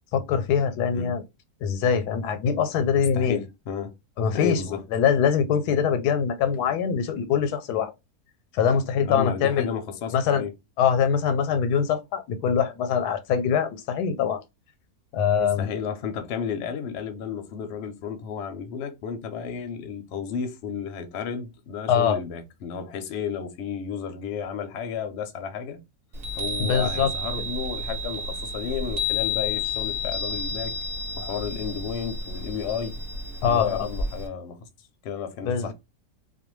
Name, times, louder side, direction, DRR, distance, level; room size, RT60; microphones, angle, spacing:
voice 1, 0.1-1.2 1.6-3.4 4.2-4.6 4.9-7.9 8.5-9.7 10.1-10.4 10.8-14.4 15.1-15.7 21.9-22.2 26.6-27.1 27.4-27.5 33.4-33.9 35.4-35.7, left 7 dB, 90° left, 1.1 m, -23 dB
voice 2, 2.9-3.9 4.3-4.8 9.0-10.5 15.4-25.8 26.4-30.7 31.2-33.0 33.5-34.6 35.0-35.7, left 7 dB, 60° left, 0.7 m, -32 dB
Chime, 26.1-34.3, left 2 dB, 45° right, 0.9 m, -31 dB
2.5 x 2.2 x 3.0 m
omnidirectional pair, 1.7 m